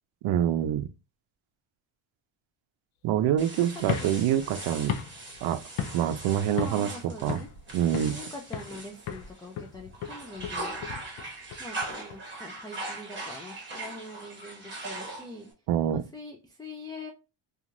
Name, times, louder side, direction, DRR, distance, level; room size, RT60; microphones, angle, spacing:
voice 1, 0.2-0.9 3.0-5.0 5.4-5.6 5.9-6.9 7.2-7.4 7.7-8.2 15.7-16.0, right 10 dB, 75° right, 0.6 m, -26 dB
sound 1, 3.4-9.6 9.9-15.5, right 2 dB, 25° right, 1.2 m, -40 dB
sound 2, 3.8-6.2 6.6-6.9 7.3-8.2 8.5-8.8 9.1-12.2, left 8 dB, 90° left, 0.6 m, -36 dB
voice 2, 6.6-7.5 8.1-10.8 11.6-15.5 16.1-17.1, left 2 dB, 10° left, 0.3 m, -43 dB
2.9 x 2.4 x 2.5 m
cardioid pair, 115°, 48 cm